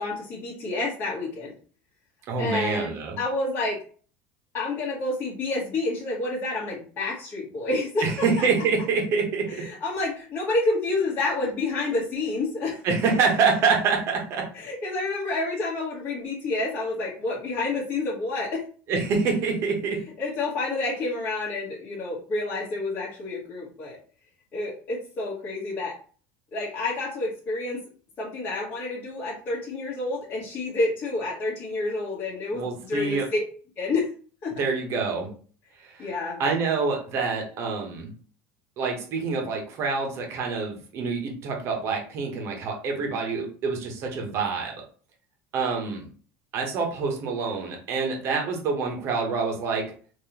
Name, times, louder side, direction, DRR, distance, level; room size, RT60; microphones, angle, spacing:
voice 1, 0.0-1.5 2.4-3.8 4.5-8.0 8.4-8.5 9.5-12.8 14.5-18.6 20.2-24.0 24.5-25.9 26.5-27.8 28.2-33.4 33.8-34.1 34.4-34.6 36.0-36.4, left 2 dB, 40° left, -6 dB, 1.3 m, -29 dB
voice 2, 2.3-3.2 8.0-9.7 12.8-14.5 18.9-20.1 32.5-33.3 34.6-35.3 35.8-36.1 36.4-38.1 38.8-44.7 45.5-46.0 46.5-49.9, right 4 dB, 50° right, 2 dB, 1.2 m, -26 dB
3.8 x 2.9 x 2.9 m, 0.42 s
supercardioid pair, 110°, 6 cm